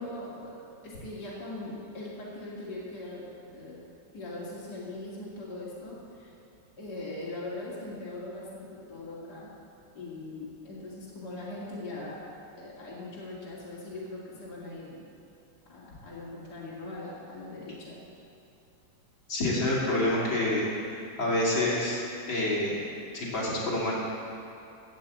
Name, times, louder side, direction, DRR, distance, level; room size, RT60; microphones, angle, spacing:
voice 1, 0.0-3.8 4.1-6.3 6.8-9.5 9.9-12.2 12.6-15.0 15.7-18.0, left 2 dB, 55° left, -7 dB, 3.0 m, -40 dB
voice 2, 19.3-20.6 20.9-22.0 22.3-22.7 23.1-23.9, left 1 dB, 80° left, -6 dB, 3.6 m, -27 dB
15.5 x 6.1 x 8.3 m, 2.8 s
omnidirectional pair, 2.1 m